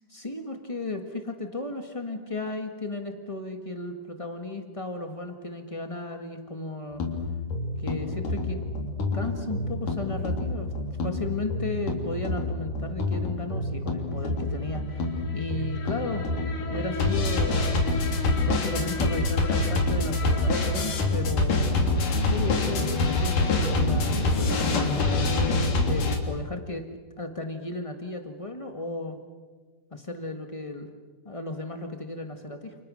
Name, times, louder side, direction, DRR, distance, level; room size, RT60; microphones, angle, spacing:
voice 1, 0.1-7.1 7.8-8.6 9.1-10.7 11.0-16.3 16.7-17.8 18.4-21.7 22.3-25.3 25.9-26.9 27.2-29.2 29.9-30.9 31.2-32.8, left 2 dB, 40° left, 5 dB, 0.4 m, -35 dB
sound 1, 7.0-26.2, left 2 dB, 85° left, 4.7 m, -26 dB
30.0 x 29.5 x 6.4 m, 1.4 s
omnidirectional pair, 3.7 m